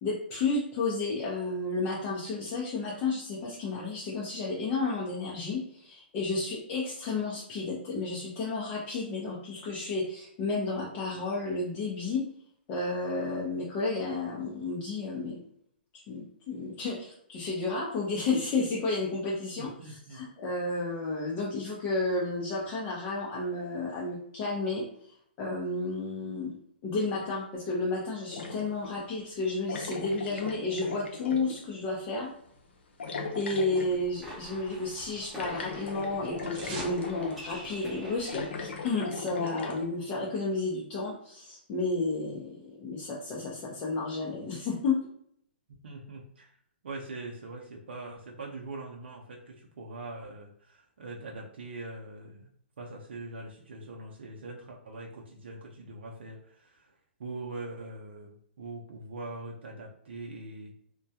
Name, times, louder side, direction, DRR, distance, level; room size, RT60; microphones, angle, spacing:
voice 1, 0.0-12.2 12.7-15.4 16.1-24.9 25.4-26.6 26.8-32.3 33.3-45.0, left 3 dB, 30° left, -5 dB, 0.6 m, -32 dB
voice 2, 19.5-20.3 45.7-46.6 46.8-52.5 52.8-60.7, right 2 dB, 75° right, -1 dB, 0.5 m, -42 dB
sound 1, 28.3-28.9 29.7-31.6 33.0-34.0 35.3-37.4 38.2-39.9, left 4 dB, 85° left, 0.6 m, -39 dB
sound 2, 33.8-38.9, equal, ahead, 0.8 m, -45 dB
sound 3, 34.2-35.5 35.7-37.0 37.3-37.4, right 3 dB, 35° right, 0.9 m, -44 dB
2.2 x 2.2 x 2.7 m, 0.68 s
hypercardioid pair, 145°, 6 cm